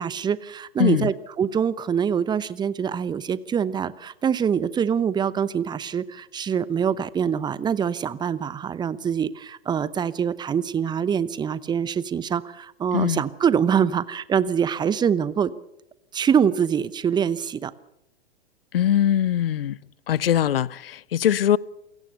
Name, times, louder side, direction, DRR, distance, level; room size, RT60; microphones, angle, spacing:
voice 1, 0.0-15.5 16.1-17.7, right 7 dB, 15° right, 0.8 m, -24 dB
voice 2, 0.8-1.1 12.9-13.2 18.7-19.8 20.1-21.6, left 11 dB, 65° left, 0.8 m, -21 dB
28.5 x 17.0 x 6.9 m
figure-of-eight pair, 105°, 32 cm